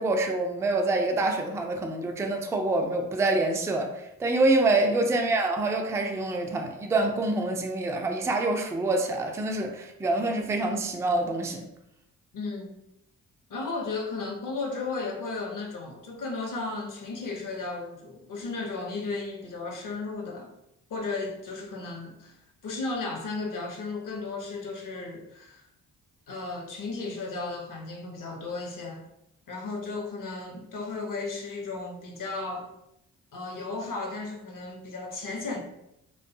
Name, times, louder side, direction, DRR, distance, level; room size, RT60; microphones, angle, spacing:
voice 1, 0.0-11.6, right 2 dB, 10° right, 3 dB, 0.3 m, -26 dB
voice 2, 12.3-12.7 13.5-20.5 20.9-22.4 22.6-25.6 26.3-29.0 29.5-32.7 33.3-35.6, left 3 dB, 50° left, 2 dB, 0.8 m, -34 dB
2.5 x 2.2 x 2.6 m, 0.83 s
supercardioid pair, 40°, 40 cm